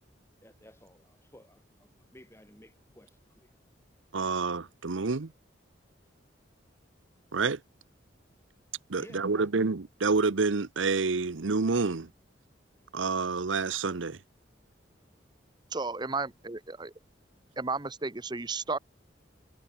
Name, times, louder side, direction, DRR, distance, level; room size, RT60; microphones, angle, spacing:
voice 1, 0.4-3.5 9.0-9.5, left 1 dB, 15° left, 4.4 m, -55 dB
voice 2, 4.1-5.3 7.3-7.6 8.9-12.1 12.9-14.2, right 4 dB, 90° right, 0.8 m, -28 dB
voice 3, 15.7-16.9 17.6-18.8, right 3 dB, 25° right, 0.9 m, -33 dB
head